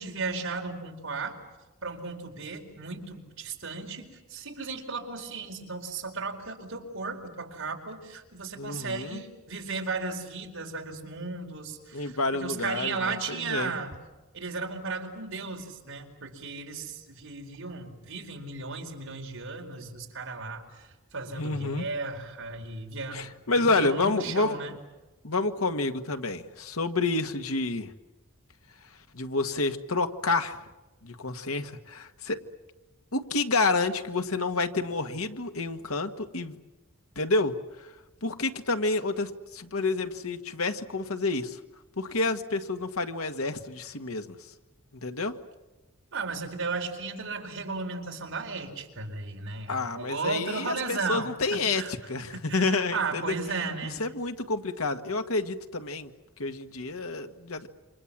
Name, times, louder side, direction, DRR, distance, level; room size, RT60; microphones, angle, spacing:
voice 1, 0.0-1.4 1.8-13.9 14.3-24.7 46.1-51.9 52.5-54.0, right 4 dB, 65° right, 2 dB, 4.7 m, -35 dB
voice 2, 8.6-9.2 11.9-13.7 21.4-21.9 23.1-24.6 25.2-27.9 29.1-30.7 31.0-32.4 33.1-36.6 37.2-37.9 38.2-41.6 42.0-44.4 44.9-45.4 49.7-51.8 52.1-53.3 53.8-56.1 56.4-57.7, left 3 dB, 80° left, 7 dB, 1.7 m, -29 dB
28.5 x 26.0 x 7.4 m, 1.1 s
head